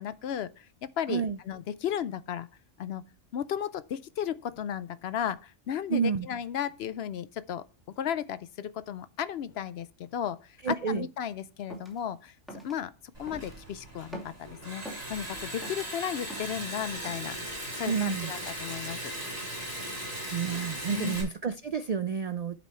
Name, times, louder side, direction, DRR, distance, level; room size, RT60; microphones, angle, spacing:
voice 1, 0.0-2.5 2.8-3.0 3.3-7.6 8.0-9.9 10.1-12.3 12.6-12.9 13.2-17.4 17.8-19.1 20.9-21.2, left 9 dB, 65° left, 0.7 m, -34 dB
voice 2, 5.9-6.3 10.6-11.1 17.9-18.3 20.3-22.5, right 6 dB, 85° right, 0.3 m, -29 dB
sound 1, 11.7-12.0 12.5-12.8 13.3-13.6 14.0-15.1 15.5-16.6 17.0-17.3, right 1 dB, ahead, 2.6 m, -44 dB
Liquid, 13.1-21.2, right 1 dB, 30° right, 4.6 m, -38 dB
11.0 x 5.4 x 4.4 m
omnidirectional pair, 1.3 m